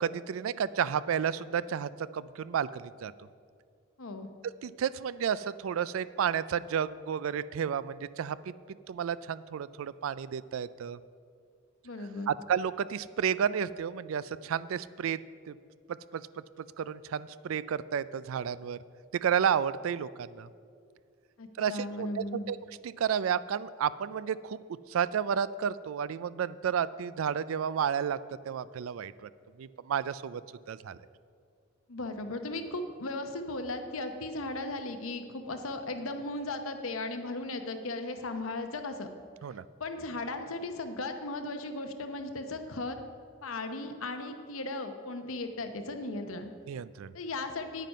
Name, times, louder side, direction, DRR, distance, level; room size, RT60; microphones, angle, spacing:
voice 1, 0.0-3.1 4.6-8.5 8.9-11.0 12.3-15.2 15.5-15.6 15.9-16.3 16.8-18.8 19.1-20.5 21.6-22.6 22.8-24.6 24.9-28.2 28.5-29.3 29.6-30.4 30.7-31.0 39.4-39.6 46.7-47.1, right 8 dB, 85° right, 17 dB, 0.3 m, -31 dB
voice 2, 4.0-4.3 11.8-12.3 21.4-22.6 31.9-39.1 39.8-43.0 43.4-46.5 47.1-47.9, left 2 dB, 90° left, 7 dB, 0.9 m, -36 dB
9.3 x 9.1 x 5.5 m, 2.2 s
head